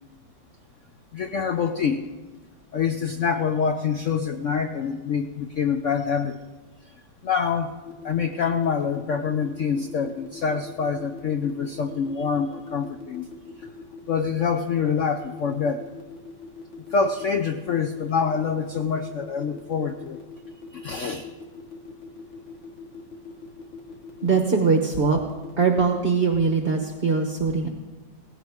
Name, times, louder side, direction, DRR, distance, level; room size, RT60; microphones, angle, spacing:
voice 1, 1.1-2.1 2.7-6.4 7.2-7.7 8.0-13.3 14.1-15.8 16.9-20.2 20.7-21.3, left 6 dB, 70° left, 7 dB, 0.7 m, -26 dB
sound 1, 7.9-26.3, left 4 dB, 90° left, 2.8 m, -41 dB
voice 2, 24.2-25.2 25.6-27.7, right 4 dB, 40° right, 3 dB, 1.0 m, -21 dB
17.5 x 16.0 x 3.6 m, 1.2 s
omnidirectional pair, 2.1 m